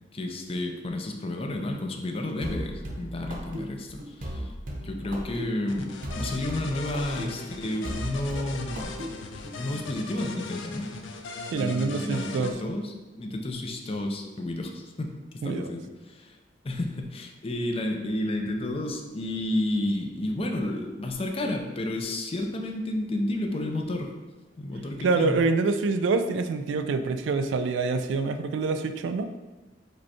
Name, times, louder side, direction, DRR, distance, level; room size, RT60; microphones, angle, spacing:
voice 1, 0.1-4.5 4.8-9.0 9.6-10.9 11.5-16.4 16.6-24.1 24.6-25.4, left 1 dB, 30° left, 3 dB, 0.5 m, -31 dB
sound 1, 2.4-9.6, equal, 50° right, 0.7 m, -37 dB
sound 2, 5.7-12.5, left 4 dB, 90° left, 0.5 m, -39 dB
voice 2, 11.5-12.6 15.4-15.7 25.0-29.3, right 4 dB, 80° right, 8 dB, 0.3 m, -26 dB
5.1 x 2.2 x 4.2 m, 1.2 s
head